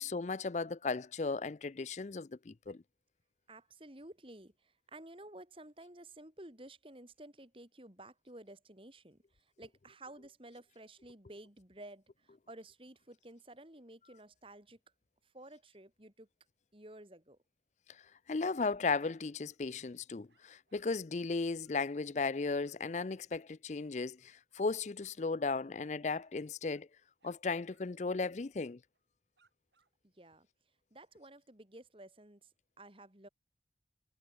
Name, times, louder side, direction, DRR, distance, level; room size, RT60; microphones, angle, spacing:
voice 1, 0.0-2.8 18.3-26.9 27.2-28.8, left 4 dB, 40° left, 0.5 m, -36 dB
voice 2, 3.5-14.8 15.2-16.3 16.7-17.4 30.0-30.5 30.9-32.5 32.8-33.3, right 1 dB, 30° right, 2.8 m, -53 dB
sound 1, 19.0-19.1 19.4-19.9 20.3-20.9 21.2-21.3 21.6-21.8 22.1-22.3 22.6-22.8 24.1-24.7 25.0-25.2 25.8-26.4 26.6-26.9 27.2-27.4 27.7-27.9 28.2-28.3 28.9-29.1 29.4-29.9, right 5 dB, 80° right, 7.0 m, -76 dB
head